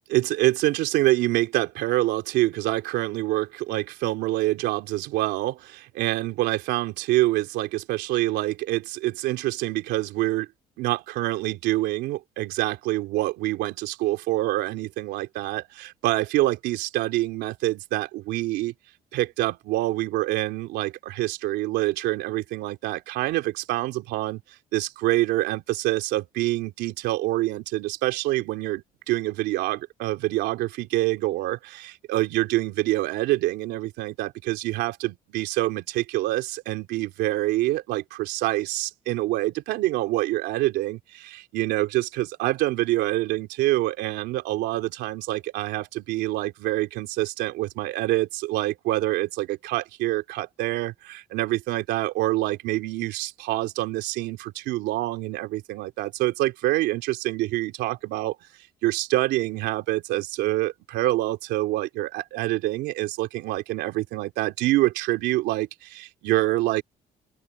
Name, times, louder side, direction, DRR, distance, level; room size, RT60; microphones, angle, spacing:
voice 1, 0.1-10.5 10.8-18.7 19.1-24.4 24.7-28.8 29.1-58.4 58.8-66.8, right 17 dB, 90° right, 3.3 m, -26 dB
open air
cardioid pair, 110°, 17 cm